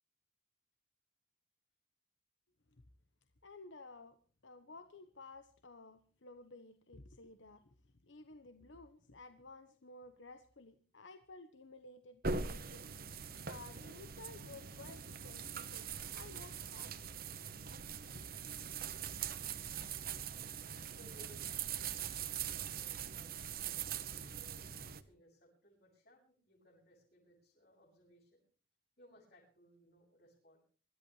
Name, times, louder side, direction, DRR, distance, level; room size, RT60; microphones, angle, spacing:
voice 1, 3.4-4.2 4.4-7.8 8.0-12.9 13.4-17.0 18.1-18.6, left 3 dB, 75° left, 8 dB, 1.1 m, -55 dB
sound 1, 12.2-25.0, right 6 dB, 50° right, 1.0 m, -42 dB
voice 2, 20.9-24.0 24.5-28.4 29.0-30.6, equal, 50° left, -6 dB, 7.7 m, -64 dB
25.5 x 13.5 x 3.2 m, 0.39 s
head